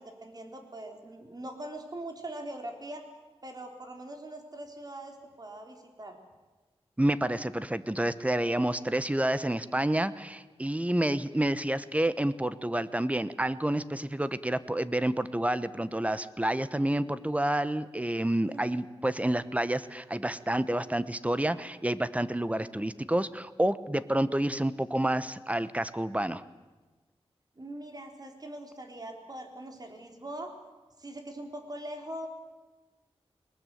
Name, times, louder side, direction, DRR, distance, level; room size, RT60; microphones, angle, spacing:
voice 1, 0.0-3.1 3.4-6.2 18.4-18.7 27.6-30.5 31.0-32.3, right 1 dB, 40° right, 4 dB, 3.9 m, -42 dB
voice 2, 7.0-26.4, right 1 dB, 15° right, 15 dB, 1.0 m, -29 dB
21.5 x 20.5 x 9.2 m, 1.2 s
wide cardioid pair, 85°, 10 cm